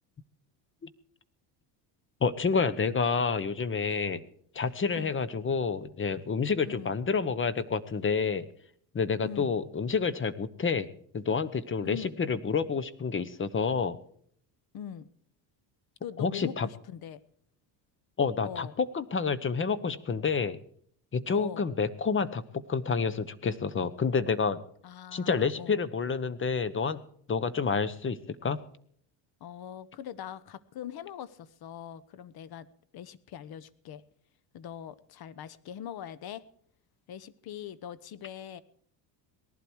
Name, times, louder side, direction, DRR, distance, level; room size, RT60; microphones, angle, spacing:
voice 1, 2.2-4.2 4.5-8.5 8.9-10.9 11.1-14.0 16.2-16.7 18.2-20.6 21.1-24.6 25.1-27.0 27.3-28.6, left 5 dB, 25° left, 16 dB, 0.9 m, -29 dB
voice 2, 6.6-6.9 9.2-9.6 11.9-12.2 14.7-15.1 16.0-17.2 18.4-18.7 21.3-21.7 24.8-25.8 29.4-32.7 32.9-34.0 34.5-36.4 37.1-38.6, left 9 dB, 50° left, 18 dB, 1.0 m, -42 dB
18.5 x 11.5 x 4.7 m, 0.63 s
supercardioid pair, 95°, 48 cm